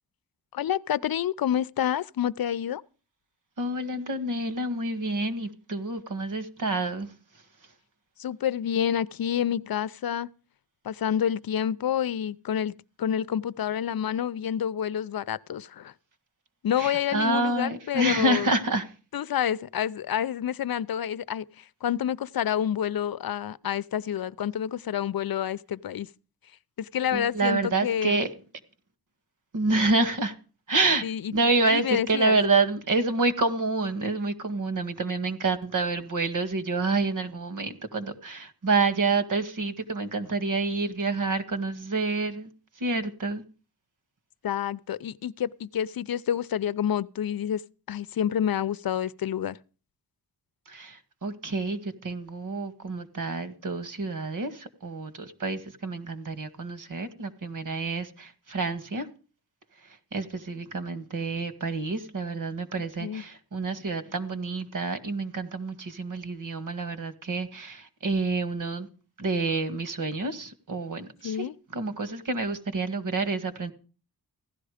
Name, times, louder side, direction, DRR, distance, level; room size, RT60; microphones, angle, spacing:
voice 1, 0.5-2.8 8.2-10.3 10.8-12.7 13.0-15.9 16.6-18.5 19.1-26.1 26.8-28.2 31.0-31.3 31.7-32.4 44.4-47.6 47.9-49.6 63.0-63.2 71.2-71.5, left 9 dB, 70° left, 0.7 m, -28 dB
voice 2, 3.6-7.1 16.8-18.9 27.1-28.3 29.5-30.3 30.7-31.0 31.3-42.5 42.8-43.4 50.7-59.1 60.1-68.9 69.2-71.4 71.7-73.7, right 3 dB, 55° right, 1.9 m, -28 dB
16.0 x 12.0 x 5.0 m
wide cardioid pair, 100°, 37 cm